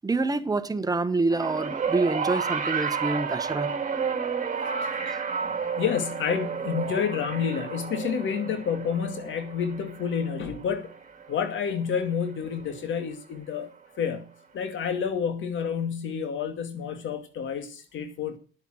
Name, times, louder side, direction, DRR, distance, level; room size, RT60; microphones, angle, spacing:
voice 1, 0.0-3.7, right 3 dB, 20° right, 1.3 m, -27 dB
sound 1, 1.3-11.7 12.8-12.9, right 6 dB, 40° right, 2.2 m, -31 dB
voice 2, 4.8-5.2 5.4-10.9 11.3-13.7 14.0-14.2 14.5-18.3, left 7 dB, 75° left, 2.4 m, -29 dB
10.5 x 7.8 x 7.7 m
cardioid pair, 90°, 20 cm